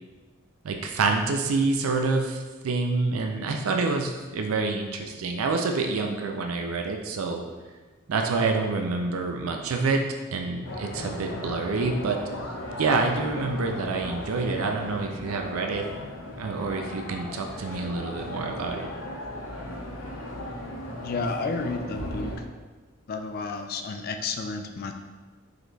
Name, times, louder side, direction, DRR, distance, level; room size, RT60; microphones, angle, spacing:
voice 1, 0.6-7.4 8.1-10.0 10.3-12.2 12.8-15.9 16.4-18.9, right 3 dB, 85° right, 3 dB, 0.4 m, -27 dB
sound 1, 10.6-22.4, left 1 dB, 70° left, 0.8 m, -37 dB
voice 2, 21.0-22.3 23.1-24.9, left 4 dB, 45° left, 6 dB, 0.3 m, -31 dB
4.9 x 4.0 x 2.3 m, 1.3 s
head